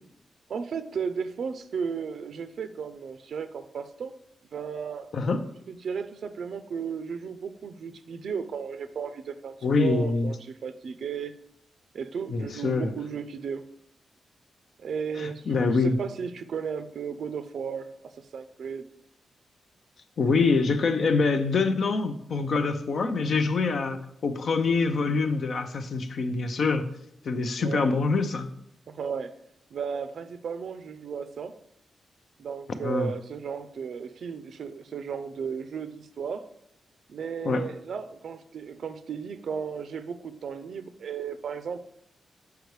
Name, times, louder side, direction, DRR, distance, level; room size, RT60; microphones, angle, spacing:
voice 1, 0.5-4.1 4.5-5.1 5.7-11.3 11.9-13.7 14.8-18.8 27.6-27.9 28.9-29.3 29.7-31.6 32.4-36.4 37.1-41.8, right 6 dB, 70° right, 0.4 m, -35 dB
voice 2, 5.1-5.4 9.6-10.3 12.3-12.9 15.2-16.0 20.2-26.9 27.2-28.5 32.8-33.1 37.4-37.6, left 4 dB, 65° left, 0.6 m, -25 dB
6.6 x 4.7 x 3.2 m
cardioid pair, 85°, 0 cm